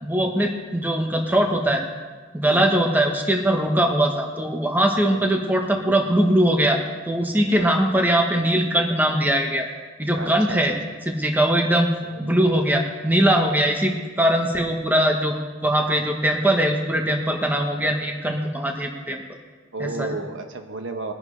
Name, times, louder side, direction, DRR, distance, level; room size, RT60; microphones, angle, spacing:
voice 1, 0.0-1.8 2.3-6.8 7.1-9.7 10.0-10.7 11.1-11.9 12.2-15.3 15.6-19.2 19.8-20.2, right 1 dB, 10° right, 3 dB, 1.1 m, -21 dB
voice 2, 10.1-10.8 12.0-12.7 19.7-21.1, right 3 dB, 70° right, 6 dB, 1.1 m, -33 dB
20.0 x 10.5 x 3.3 m, 1.4 s
head